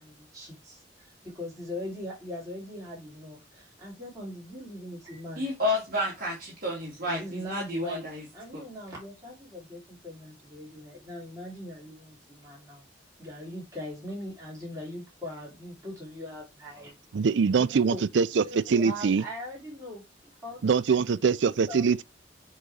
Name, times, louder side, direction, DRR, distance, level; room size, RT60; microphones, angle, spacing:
voice 1, 0.0-5.5 7.0-12.8 13.2-16.9 17.6-18.0 18.4-20.0 20.4-20.6 20.9-21.0 21.7-21.8, left 1 dB, 20° right, 3.7 m, -40 dB
voice 2, 5.4-8.2 8.5-8.6, left 1 dB, 50° right, 2.2 m, -31 dB
voice 3, 17.1-19.2 20.6-22.0, right 5 dB, 75° right, 0.4 m, -23 dB
7.3 x 4.0 x 4.8 m
head